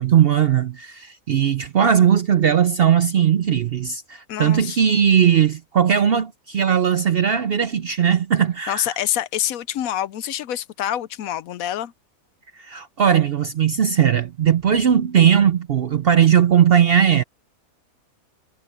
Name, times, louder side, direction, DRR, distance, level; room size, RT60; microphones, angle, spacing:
voice 1, 0.0-8.9 12.6-17.2, right 8 dB, 60° right, 0.6 m, -18 dB
voice 2, 4.3-4.8 8.7-11.9, left 11 dB, 75° left, 1.0 m, -26 dB
omnidirectional pair, 1.6 m